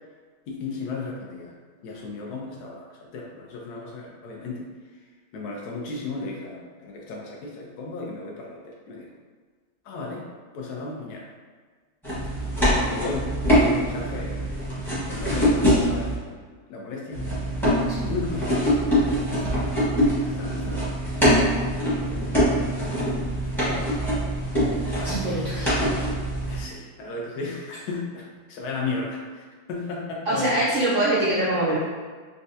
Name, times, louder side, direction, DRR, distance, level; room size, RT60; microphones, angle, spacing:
voice 1, 0.5-1.5 1.8-4.6 5.3-9.1 9.8-10.3 10.5-11.3 12.8-14.4 15.0-16.4 16.7-17.3 18.1-18.8 19.3-19.5 20.2-20.9 22.1-22.4 23.5-23.8 24.9-25.4 26.5-30.6, left 3 dB, 70° left, -2 dB, 0.9 m, -35 dB
sound 1, 12.0-16.1 17.1-26.6, equal, ahead, 0.6 m, -24 dB
voice 2, 25.0-26.0 30.3-31.8, right 1 dB, 80° right, -10 dB, 0.6 m, -24 dB
4.1 x 2.3 x 2.6 m, 1.5 s
omnidirectional pair, 2.2 m